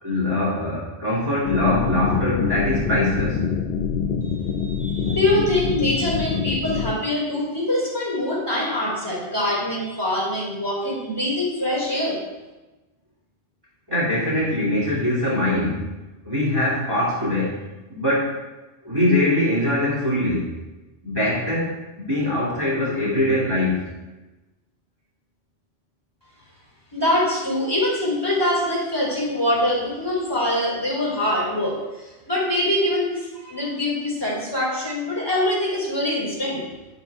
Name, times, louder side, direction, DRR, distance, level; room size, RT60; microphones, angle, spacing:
voice 1, 0.0-3.4 13.9-15.9 16.2-17.6 17.9-18.3 18.8-20.5 21.0-23.9, left 1 dB, 20° right, -8 dB, 2.7 m, -22 dB
sound 1, 1.4-6.9, left 7 dB, 60° left, 0.7 m, -25 dB
voice 2, 4.2-12.2 26.9-36.6, left 1 dB, 20° left, -6 dB, 3.8 m, -24 dB
10.5 x 9.5 x 3.6 m, 1.1 s
omnidirectional pair, 1.2 m